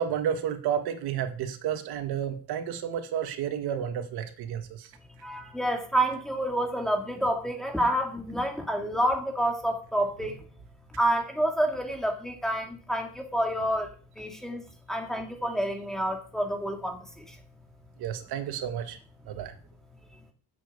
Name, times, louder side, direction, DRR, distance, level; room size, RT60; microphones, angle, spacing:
voice 1, 0.0-4.9 18.0-19.0 19.3-19.5, right 9 dB, 80° right, 2.0 m, -31 dB
voice 2, 5.2-10.4 10.9-13.9 14.2-14.6 14.9-17.4, right 1 dB, ahead, 2.5 m, -28 dB
10.5 x 7.8 x 8.4 m
cardioid pair, 165°, 38 cm